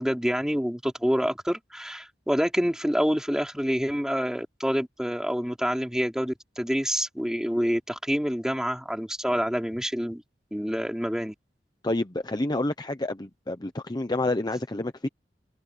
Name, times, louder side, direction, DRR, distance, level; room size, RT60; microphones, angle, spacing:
voice 1, 0.0-10.2 10.5-11.3, equal, 5° right, 3.8 m, -27 dB
voice 2, 11.8-15.1, left 2 dB, 25° left, 0.9 m, -28 dB
head